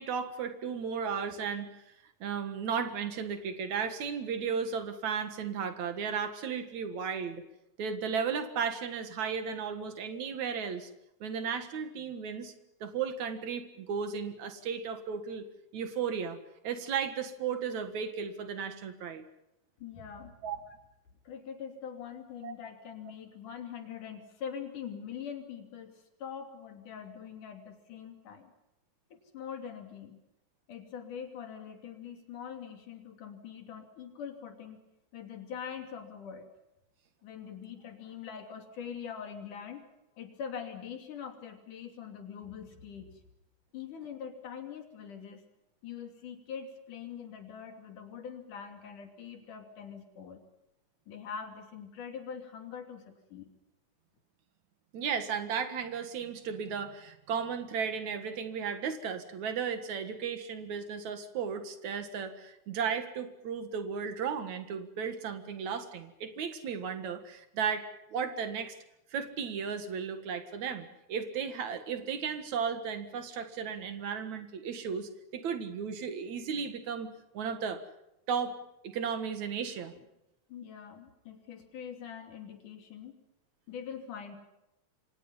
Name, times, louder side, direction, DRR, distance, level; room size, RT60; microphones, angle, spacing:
voice 1, 0.0-1.7 2.2-7.4 7.8-10.9 11.2-12.5 12.8-15.5 15.7-16.4 16.6-19.2 20.4-20.6 22.4-22.5 54.9-68.8 69.1-77.1 77.3-77.8 78.3-78.6 78.8-79.9, right 6 dB, 65° right, 8 dB, 3.0 m, -35 dB
voice 2, 19.8-20.4 21.3-28.5 29.1-30.2 30.7-34.8 35.1-36.5 37.2-39.8 40.2-43.2 43.7-45.4 45.8-50.4 51.1-53.5 80.5-83.2 83.7-84.4, left 7 dB, 80° left, 5 dB, 4.4 m, -43 dB
28.0 x 25.0 x 5.6 m, 0.89 s
omnidirectional pair, 3.5 m